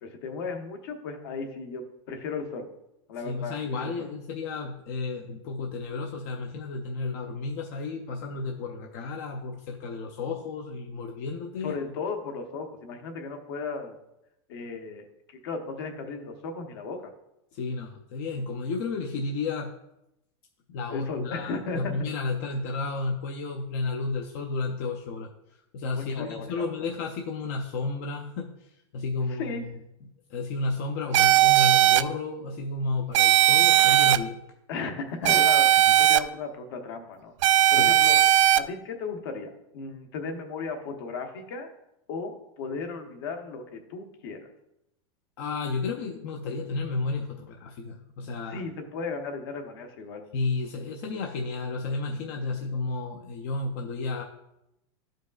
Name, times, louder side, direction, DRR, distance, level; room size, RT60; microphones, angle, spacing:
voice 1, 0.0-2.7 3.1-4.1 11.6-13.9 14.5-15.0 15.4-17.1 20.9-21.9 26.1-26.6 29.3-29.7 34.7-37.3 37.7-38.2 38.6-41.7 42.1-44.5 48.5-50.2, left 4 dB, 55° left, 5 dB, 1.0 m, -35 dB
voice 2, 3.2-11.8 17.5-19.7 20.7-25.3 25.7-29.7 30.3-34.4 35.9-36.0 37.8-37.9 45.4-48.6 50.3-54.2, left 3 dB, 35° left, 2 dB, 0.5 m, -32 dB
sound 1, 31.1-32.0 33.1-34.2 35.3-36.2 37.4-38.6, right 13 dB, 80° right, 0.4 m, -18 dB
12.5 x 5.2 x 2.4 m, 0.86 s
supercardioid pair, 180°, 15 cm